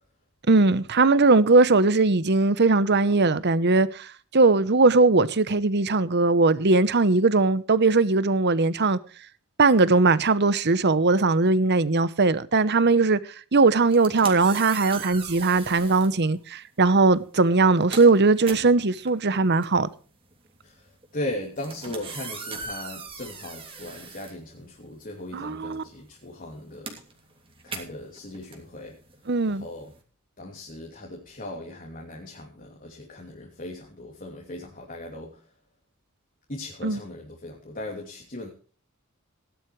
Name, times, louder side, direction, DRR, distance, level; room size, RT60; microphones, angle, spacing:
voice 1, 0.5-9.0 9.6-13.2 13.5-19.9 25.3-25.8 29.3-29.7 36.8-37.0, right 3 dB, 50° right, 0.9 m, -20 dB
sound 1, 13.8-16.2 17.0-17.2 17.6-25.1 25.4-30.0, right 4 dB, 25° right, 3.1 m, -40 dB
voice 2, 21.1-26.9 27.6-29.0 29.5-29.9 30.4-35.4 36.5-38.5, left 1 dB, 40° left, 2.8 m, -38 dB
18.0 x 11.5 x 3.2 m
head